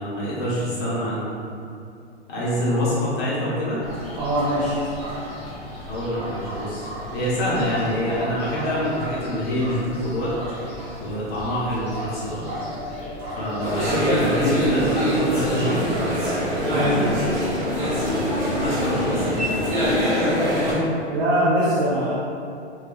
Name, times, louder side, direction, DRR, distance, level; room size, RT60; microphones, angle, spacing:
voice 1, 0.0-1.3 2.3-3.8 5.9-10.3 11.0-12.4 13.4-15.8 18.6-19.8, equal, 25° left, -8 dB, 0.7 m, -26 dB
sound 1, 3.8-19.5, equal, 15° right, 0.7 m, -35 dB
voice 2, 4.1-4.8 16.7-17.1 21.1-22.2, right 1 dB, 60° right, -8 dB, 0.6 m, -22 dB
sound 2, 12.5-20.5, left 5 dB, 70° left, 0.5 m, -34 dB
sound 3, 13.6-20.7, equal, 85° right, 1.0 m, -23 dB
2.2 x 2.2 x 2.5 m, 2.4 s
hypercardioid pair, 115°, 35 cm